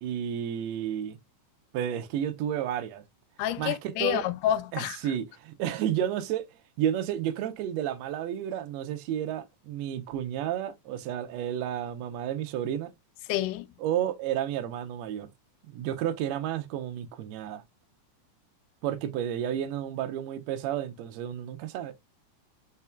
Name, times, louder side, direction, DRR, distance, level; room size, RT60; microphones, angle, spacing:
voice 1, 0.0-1.2 1.7-3.0 3.6-4.2 4.7-6.5 6.8-12.9 13.8-15.3 15.7-17.6 18.8-21.9, right 10 dB, 75° right, 1.7 m, -31 dB
voice 2, 3.4-5.0 13.3-13.7, left 11 dB, 85° left, 2.1 m, -28 dB
5.6 x 4.1 x 2.2 m
omnidirectional pair, 3.6 m